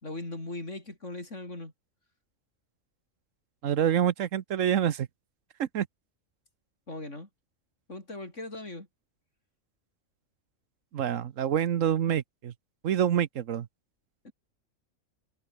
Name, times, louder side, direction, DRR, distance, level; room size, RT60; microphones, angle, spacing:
voice 1, 0.0-1.7 6.9-7.3 7.9-8.9 14.2-14.3, left 2 dB, 65° left, 6.0 m, -39 dB
voice 2, 3.6-5.1 5.6-5.9 10.9-12.5 12.8-13.7, right 9 dB, 75° right, 1.2 m, -26 dB
omnidirectional pair, 1.4 m